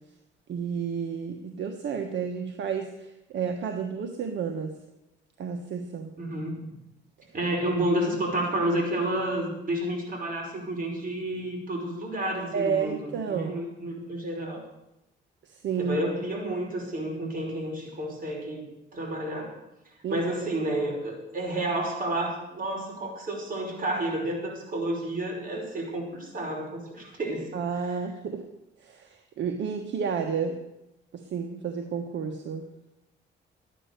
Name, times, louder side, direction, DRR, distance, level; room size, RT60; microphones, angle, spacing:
voice 1, 0.5-4.7 5.4-6.1 12.5-13.5 15.4-16.0 20.0-20.2 27.5-28.4 28.8-30.6 31.1-32.7, right 6 dB, 65° right, 5 dB, 1.4 m, -31 dB
voice 2, 6.2-6.7 7.3-14.6 15.8-18.6 18.9-19.6 20.1-27.5 27.8-27.9, right 1 dB, 45° right, 0 dB, 5.5 m, -30 dB
13.5 x 10.0 x 6.8 m, 0.89 s
cardioid pair, 90°, 20 cm